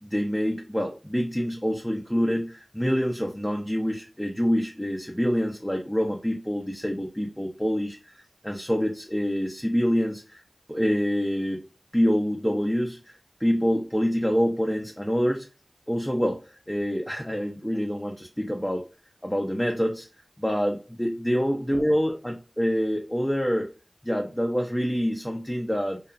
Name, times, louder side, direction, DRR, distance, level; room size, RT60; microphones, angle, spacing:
voice 1, 0.0-10.4 10.7-11.6 11.9-15.5 15.9-18.8 19.2-20.1 20.4-23.7 24.0-26.0, equal, 10° left, 1 dB, 0.4 m, -26 dB
2.8 x 2.2 x 2.4 m, 0.33 s
wide cardioid pair, 45°, 0 cm